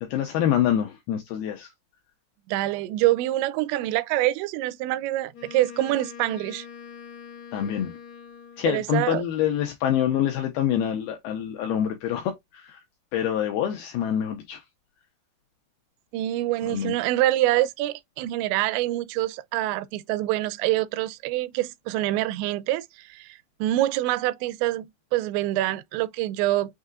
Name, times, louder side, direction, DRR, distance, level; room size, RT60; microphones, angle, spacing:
voice 1, 0.0-1.7 7.5-7.9 8.6-12.8 13.1-14.6 16.6-16.9, left 10 dB, 80° left, 2.3 m, -26 dB
voice 2, 2.5-6.7 8.7-9.2 16.1-26.8, right 15 dB, 85° right, 2.8 m, -26 dB
Wind instrument woodwind instrument, 5.3-8.9, left 7 dB, 55° left, 1.2 m, -43 dB
6.5 x 2.7 x 2.4 m
omnidirectional pair, 5.1 m